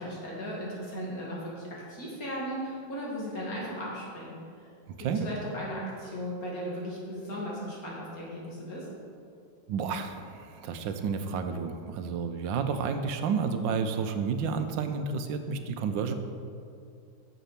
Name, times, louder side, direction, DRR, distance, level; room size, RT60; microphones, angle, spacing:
voice 1, 0.0-4.4 5.0-8.9, equal, 50° left, -4 dB, 2.6 m, -36 dB
voice 2, 9.7-16.1, right 5 dB, 90° right, 8 dB, 1.4 m, -31 dB
8.4 x 7.0 x 5.8 m, 2.4 s
omnidirectional pair, 2.0 m